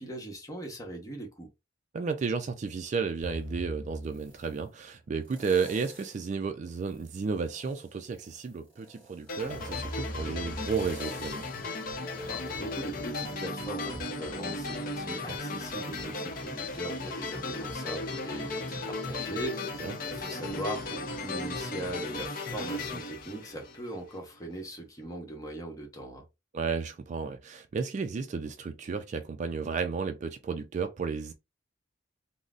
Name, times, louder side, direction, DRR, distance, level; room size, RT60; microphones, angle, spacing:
voice 1, 0.0-1.5 12.3-26.2, right 1 dB, 20° left, 0.9 m, -40 dB
voice 2, 1.9-11.5 19.8-19.9 26.5-31.3, right 5 dB, 40° right, 0.3 m, -33 dB
sound 1, 3.2-4.6 5.2-6.3 6.8-13.5 13.9-14.0, right 1 dB, 10° right, 1.9 m, -43 dB
sound 2, 9.3-24.1, left 2 dB, 50° left, 0.6 m, -36 dB
3.7 x 2.0 x 2.4 m
head